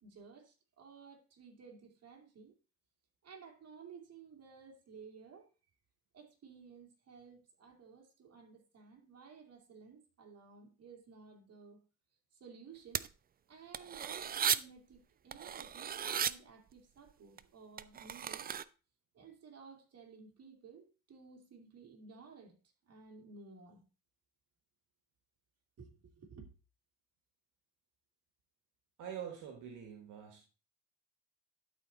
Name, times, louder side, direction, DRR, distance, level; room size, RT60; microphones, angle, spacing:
voice 1, 0.0-2.5 3.2-5.5 6.1-11.8 12.3-13.1 13.5-18.5 19.1-22.6 22.9-23.9 25.8-26.5, right 5 dB, 55° right, 2.6 m, -55 dB
sound 1, 12.9-13.1 13.7-14.6 15.3-16.3 17.4-17.5 17.8-18.6, right 8 dB, 30° right, 0.4 m, -35 dB
voice 2, 29.0-30.4, right 8 dB, 85° right, 1.6 m, -45 dB
12.0 x 4.2 x 3.9 m
cardioid pair, 90°, 30 cm